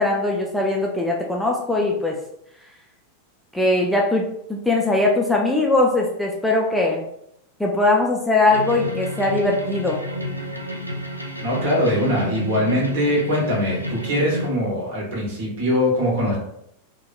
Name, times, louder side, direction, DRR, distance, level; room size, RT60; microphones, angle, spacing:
voice 1, 0.0-2.2 3.5-7.0 7.6-10.0, left 2 dB, 5° left, -1 dB, 0.3 m, -20 dB
sound 1, 8.5-14.5, left 1 dB, 90° right, 0.3 m, -30 dB
voice 2, 11.4-16.4, equal, 50° right, -4 dB, 1.1 m, -22 dB
2.7 x 2.1 x 2.4 m, 0.76 s
figure-of-eight pair, 90°, 0 cm